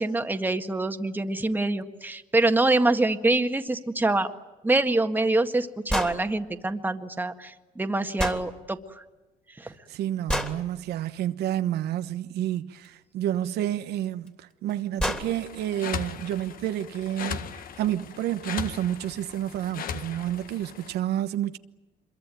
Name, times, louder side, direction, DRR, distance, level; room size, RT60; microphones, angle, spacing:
voice 1, 0.0-4.3 4.6-8.8 9.6-9.7, right 2 dB, 10° right, 1.8 m, -25 dB
sound 1, 5.9-6.2 8.2-8.4 10.3-10.6 12.8-12.9 14.3-14.4 14.7-14.8 15.0-15.3, equal, 5° left, 3.1 m, -27 dB
voice 2, 9.9-21.6, right 12 dB, 75° right, 1.1 m, -30 dB
sound 2, 15.1-20.9, left 7 dB, 60° left, 1.7 m, -38 dB
26.0 x 22.5 x 9.2 m
cardioid pair, 110°, 17 cm